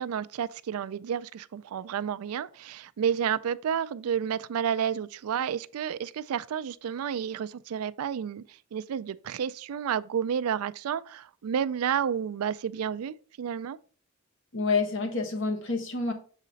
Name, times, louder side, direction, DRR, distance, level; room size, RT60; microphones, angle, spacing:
voice 1, 0.0-13.8, right 8 dB, 90° right, 0.3 m, -31 dB
voice 2, 14.5-16.1, left 4 dB, 60° left, 1.1 m, -28 dB
6.5 x 4.1 x 4.0 m
head